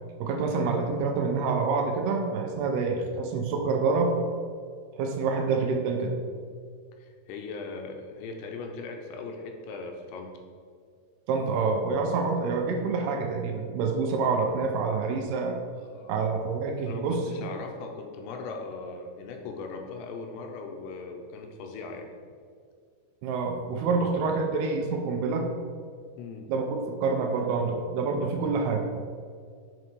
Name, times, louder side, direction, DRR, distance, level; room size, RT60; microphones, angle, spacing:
voice 1, 0.2-4.2 5.0-6.2 11.3-15.6 16.1-17.5 23.2-25.5 26.5-26.7 27.0-29.0, right 4 dB, 85° right, 3 dB, 2.6 m, -27 dB
voice 2, 7.0-10.4 15.9-16.3 16.9-22.1 26.2-26.5, left 4 dB, 90° left, 3 dB, 3.0 m, -39 dB
6.5 x 6.0 x 4.7 m, 2.1 s
omnidirectional pair, 4.8 m